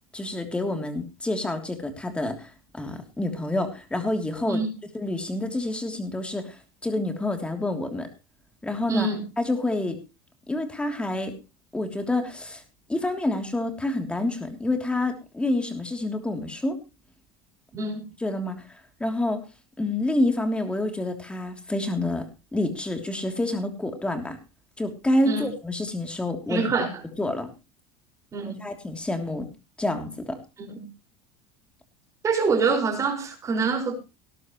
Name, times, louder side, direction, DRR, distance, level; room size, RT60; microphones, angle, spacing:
voice 1, 0.1-4.6 4.9-8.1 8.6-9.1 9.4-10.0 10.5-11.3 11.7-12.6 12.9-16.8 18.2-18.5 19.0-19.4 19.8-22.3 22.5-24.4 24.8-26.7 27.2-27.5 28.6-29.5 29.8-30.4, left 1 dB, 10° left, 5 dB, 3.2 m, -28 dB
voice 2, 8.9-9.2 17.7-18.0 25.2-25.5 26.5-27.0 28.3-28.6 30.7-30.9 32.2-33.9, right 4 dB, 25° right, 4 dB, 5.6 m, -25 dB
19.0 x 11.5 x 3.2 m, 0.30 s
supercardioid pair, 135°, 12 cm